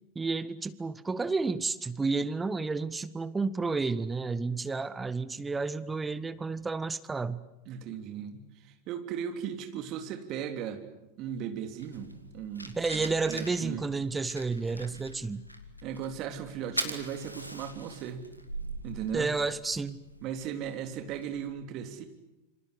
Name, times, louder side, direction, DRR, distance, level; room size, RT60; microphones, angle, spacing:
voice 1, 0.1-7.4 12.7-15.4 19.1-20.0, right 4 dB, 10° right, 16 dB, 1.1 m, -31 dB
voice 2, 7.6-10.8 11.2-13.8 15.8-18.2 18.8-19.3 20.2-22.1, right 8 dB, 40° right, 6 dB, 3.4 m, -37 dB
Fire, 11.8-21.5, right 1 dB, 90° right, 2.4 m, -42 dB
27.5 x 25.5 x 8.2 m, 0.94 s
figure-of-eight pair, 90°, 0 cm